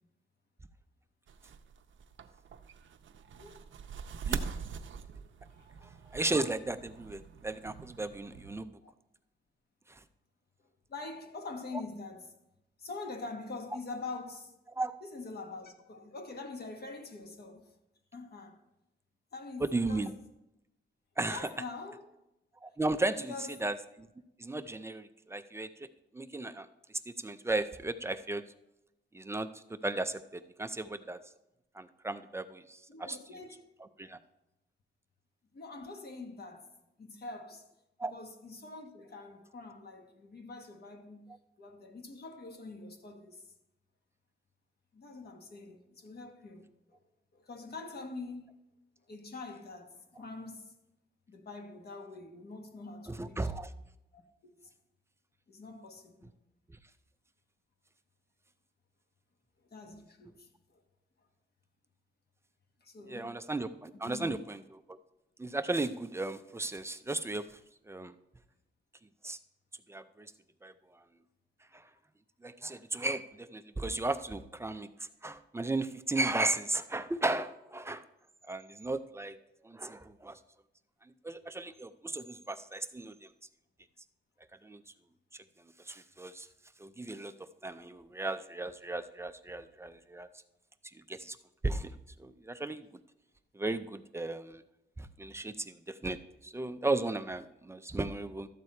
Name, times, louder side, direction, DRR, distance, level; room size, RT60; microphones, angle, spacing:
sound 1, 1.3-8.6, right 6 dB, 90° right, 0.6 m, -43 dB
voice 1, 3.3-3.6 5.6-5.8 8.3-8.4 8.8-8.9 10.9-12.3 12.8-14.5 15.0-17.6 18.1-18.6 19.3-20.2 21.2-22.0 22.6-22.7 23.2-23.5 32.9-33.7 35.5-36.7 37.0-37.7 38.1-43.5 44.9-47.0 47.3-48.5 49.1-50.7 51.3-53.5 54.1-54.7 55.5-56.3 59.7-60.8 62.8-63.4 64.0-64.3 78.4-78.5 89.5-89.6, left 3 dB, 55° left, 1.2 m, -45 dB
voice 2, 5.8-8.7 9.9-10.0 14.8-15.0 19.6-20.1 21.2-21.5 22.6-23.3 23.6-24.1 24.4-25.9 26.1-26.7 27.1-28.4 29.1-31.2 31.7-33.2 34.0-34.2 38.0-38.1 53.1-53.7 63.1-65.0 65.4-67.6 67.9-68.1 69.2-69.4 69.9-70.3 70.6-71.0 71.7-71.9 72.4-78.0 78.5-79.4 79.6-80.4 81.2-83.3 84.6-84.8 85.8-86.5 86.8-87.3 87.6-90.3 90.9-91.4 91.6-92.9 93.5-94.6 95.0-98.5, right 2 dB, 15° right, 0.3 m, -35 dB
12.5 x 8.0 x 4.3 m
wide cardioid pair, 180°, 19 cm